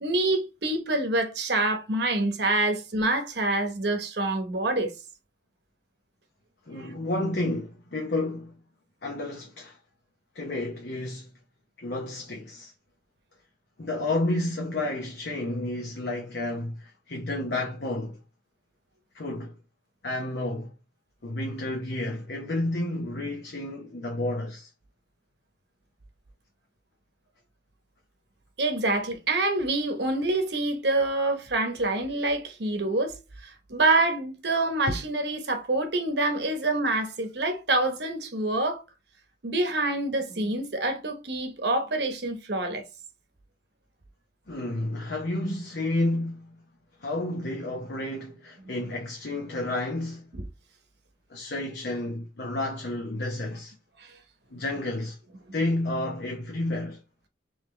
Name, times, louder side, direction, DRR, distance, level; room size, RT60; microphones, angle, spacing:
voice 1, 0.0-4.9 6.8-6.9 28.6-33.1 33.4-38.8 39.4-42.8, right 2 dB, 60° right, 0.9 m, -26 dB
voice 2, 6.7-8.5 9.0-9.8 10.3-11.3 11.8-12.7 13.8-18.2 19.1-19.5 20.0-20.7 21.2-24.7 44.5-46.6 47.0-50.2 51.3-53.7 54.5-55.2 55.5-57.0, left 2 dB, 60° left, 0.8 m, -31 dB
3.8 x 3.2 x 3.2 m
head